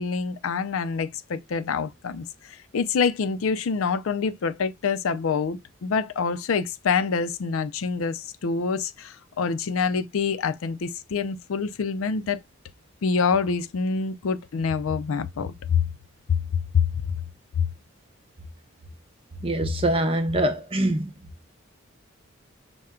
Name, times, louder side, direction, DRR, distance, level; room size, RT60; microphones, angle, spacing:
voice 1, 0.0-2.3 2.7-12.4 13.0-15.8 16.3-16.4 16.7-16.9 17.6-17.7, left 5 dB, 75° left, 0.4 m, -26 dB
voice 2, 19.4-21.1, right 1 dB, 25° right, 0.7 m, -24 dB
5.5 x 2.2 x 3.6 m
head